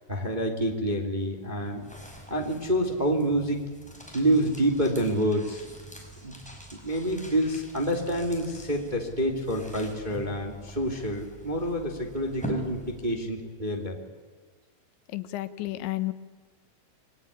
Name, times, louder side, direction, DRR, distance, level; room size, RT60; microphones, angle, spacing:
voice 1, 0.1-1.8 2.3-3.6 4.1-5.6 6.2-6.3 6.8-14.0, right 1 dB, 15° right, 2 dB, 2.0 m, -27 dB
sound 1, 1.2-13.4, right 1 dB, ahead, 5.1 m, -43 dB
voice 2, 15.1-16.1, left 17 dB, 80° left, 12 dB, 3.3 m, -31 dB
28.0 x 21.0 x 9.9 m, 1.5 s
omnidirectional pair, 5.3 m